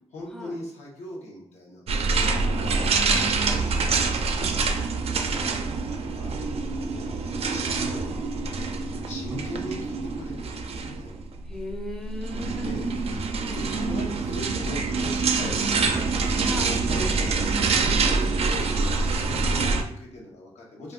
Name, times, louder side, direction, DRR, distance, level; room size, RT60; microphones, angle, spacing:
voice 1, 0.1-2.8 3.5-4.9 5.3-7.2 7.5-8.2 8.6-11.1 12.5-12.9 13.5-17.4 17.6-20.9, left 1 dB, 85° left, -3 dB, 0.9 m, -40 dB
sound 1, 1.9-19.8, right 4 dB, 65° right, 0.4 m, -26 dB
voice 2, 3.2-3.6 5.4-5.8 11.5-12.9 13.3-13.7 16.4-16.8 17.3-17.6, left 1 dB, 5° left, 2 dB, 0.6 m, -38 dB
2.4 x 2.3 x 3.6 m, 0.66 s
cardioid pair, 75°, 11 cm